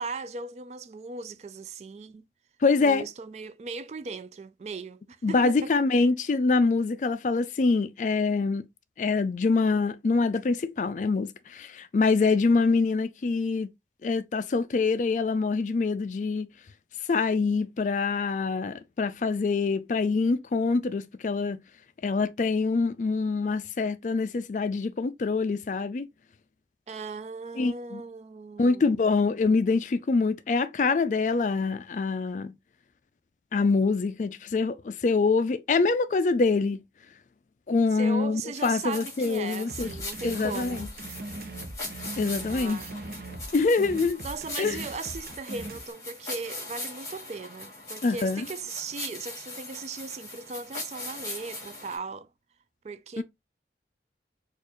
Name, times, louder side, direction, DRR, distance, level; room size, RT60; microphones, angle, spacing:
voice 1, 0.0-2.3 2.8-5.7 26.9-29.1 37.9-40.9 42.5-42.9 44.2-52.3 52.8-53.2, right 4 dB, 40° right, 0.3 m, -38 dB
voice 2, 2.6-3.0 5.2-8.7 9.0-13.7 14.0-16.5 17.1-21.6 22.0-26.1 27.6-28.0 28.6-32.5 33.5-36.8 37.7-39.9 40.2-40.9 42.2-42.8 43.5-44.2 44.6-44.8 48.0-48.5 53.2-53.3, left 4 dB, 45° left, 0.3 m, -25 dB
sound 1, 38.5-52.0, left 2 dB, 20° left, 1.8 m, -40 dB
sound 2, 39.7-45.8, right 2 dB, 55° right, 0.7 m, -40 dB
4.3 x 2.5 x 2.9 m
head